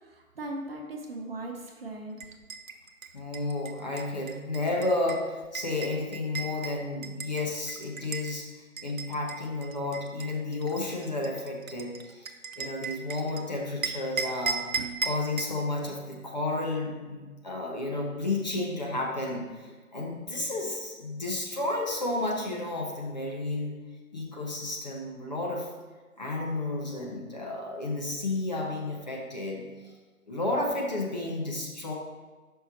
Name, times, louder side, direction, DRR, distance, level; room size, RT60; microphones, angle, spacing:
voice 1, 0.1-2.2, right 2 dB, 45° right, 1 dB, 1.0 m, -38 dB
sound 1, 2.2-8.3 8.8-13.4 13.8-15.6, right 5 dB, 70° right, 0.8 m, -36 dB
voice 2, 3.1-8.5 8.8-14.6 15.0-23.8 24.1-25.7 26.2-29.9 30.3-31.9, left 2 dB, 30° left, -1 dB, 0.9 m, -32 dB
6.1 x 5.6 x 4.3 m, 1.3 s
figure-of-eight pair, 160°, 42 cm